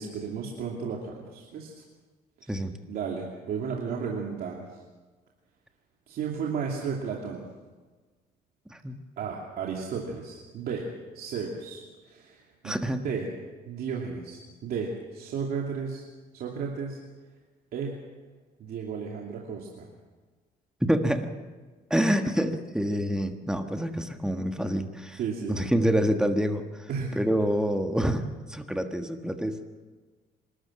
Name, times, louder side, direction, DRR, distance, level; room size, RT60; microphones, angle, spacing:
voice 1, 0.0-1.8 2.4-2.5 2.9-4.8 6.1-7.4 9.2-10.8 11.1-12.8 13.0-13.3 13.7-16.0 16.3-17.0 17.7-18.0 18.6-19.9 25.2-25.7 26.9-27.2, right 6 dB, 65° right, -1 dB, 2.7 m, -34 dB
voice 2, 12.6-13.0 20.8-21.3 21.9-25.2 25.5-26.6 27.1-28.2 28.5-29.6, equal, 5° right, 6 dB, 1.6 m, -26 dB
27.0 x 13.0 x 7.6 m, 1.3 s
cardioid pair, 110°, 17 cm